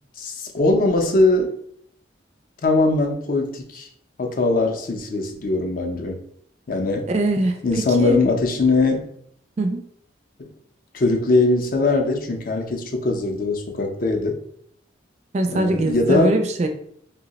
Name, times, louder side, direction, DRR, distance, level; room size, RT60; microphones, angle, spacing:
voice 1, 0.2-1.5 2.6-3.9 4.2-6.2 6.7-7.1 7.6-9.1 10.4-10.5 10.9-14.4 15.5-16.4, left 3 dB, 45° left, 3 dB, 0.5 m, -21 dB
voice 2, 7.1-7.6 8.0-8.2 9.6-9.8 15.3-16.7, right 2 dB, 35° right, 6 dB, 0.3 m, -21 dB
2.7 x 2.0 x 3.9 m, 0.65 s
head